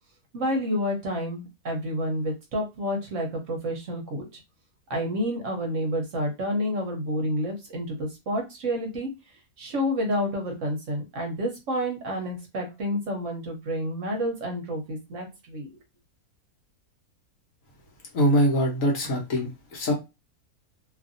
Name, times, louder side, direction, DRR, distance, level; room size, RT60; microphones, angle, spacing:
voice 1, 0.3-4.2 4.9-9.1 9.6-15.7, equal, 60° right, 2 dB, 1.0 m, -29 dB
voice 2, 18.1-19.9, equal, 60° left, -1 dB, 1.2 m, -23 dB
2.8 x 2.5 x 2.5 m, 0.25 s
omnidirectional pair, 1.6 m